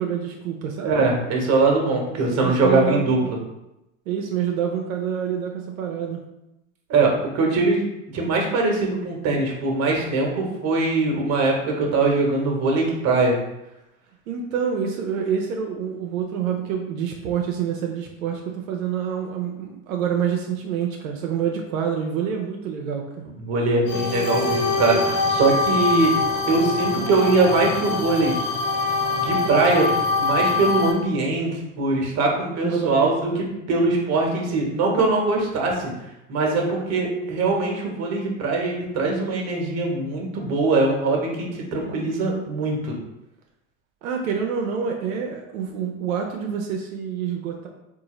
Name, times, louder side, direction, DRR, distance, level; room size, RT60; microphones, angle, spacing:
voice 1, 0.0-1.0 2.1-3.3 4.1-6.2 14.3-23.0 32.6-33.4 44.0-47.7, right 7 dB, 85° right, 1 dB, 0.6 m, -27 dB
voice 2, 0.8-3.2 6.9-7.8 8.1-13.4 23.4-26.1 26.5-28.3 29.1-29.9 30.2-35.9 36.3-43.0, right 3 dB, 40° right, 0 dB, 1.1 m, -22 dB
sound 1, 23.9-30.9, left 3 dB, 40° left, 1.0 m, -24 dB
3.7 x 2.5 x 2.9 m, 0.90 s
hypercardioid pair, 95°, 40 cm